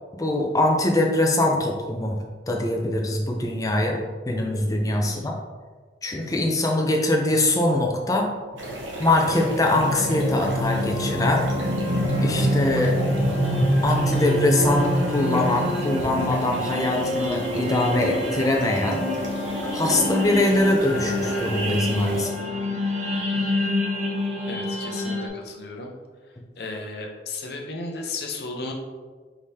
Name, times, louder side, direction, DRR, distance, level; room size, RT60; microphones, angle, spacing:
voice 1, 0.2-2.2 2.5-5.3 6.0-8.3 9.0-11.5 12.2-13.0 13.8-19.1 19.7-22.4, left 1 dB, 20° left, 1 dB, 0.5 m, -23 dB
voice 2, 5.0-5.3 24.5-25.9 26.6-28.7, left 3 dB, 55° left, 1 dB, 0.7 m, -34 dB
sound 1, 8.5-25.3, left 1 dB, 35° right, 0.6 m, -26 dB
sound 2, 8.6-22.2, right 1 dB, 90° right, 1.1 m, -34 dB
4.8 x 3.6 x 2.8 m, 1.4 s
head